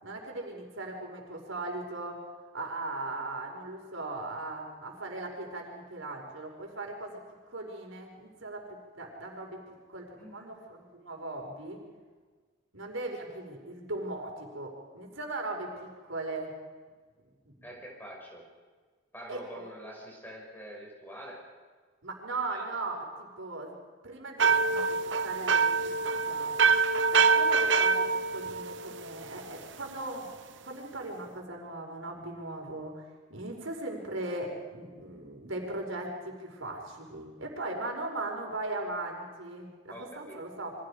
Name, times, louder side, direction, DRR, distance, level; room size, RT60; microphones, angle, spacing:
voice 1, 0.0-2.2 2.5-7.2 7.5-8.6 9.0-9.6 9.9-11.8 12.7-16.5 17.2-17.5 19.3-19.7 22.0-23.8 24.0-25.7 26.3-26.5 27.1-28.1 28.3-30.3 30.6-33.0 33.3-40.7, right 2 dB, 80° right, 0 dB, 5.2 m, -38 dB
voice 2, 10.2-10.6 17.6-18.4 19.1-21.4 22.5-22.7 27.1-27.4 39.9-40.4, equal, 10° left, -1 dB, 6.2 m, -45 dB
sound 1, 24.4-29.3, right 5 dB, 65° right, 0.9 m, -25 dB
29.0 x 24.5 x 5.1 m, 1.5 s
head